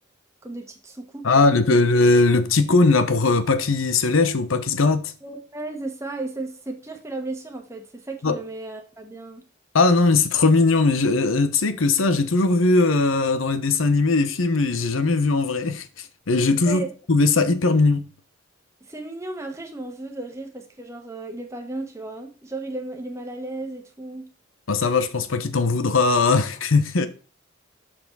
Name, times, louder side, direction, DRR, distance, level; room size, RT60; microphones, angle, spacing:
voice 1, 0.4-1.8 5.2-9.4 16.6-16.9 18.9-24.3, right 2 dB, 15° right, 1.3 m, -34 dB
voice 2, 1.2-5.1 8.2-8.4 9.7-18.1 24.7-27.1, left 3 dB, 80° left, 0.8 m, -19 dB
6.8 x 6.1 x 4.1 m
head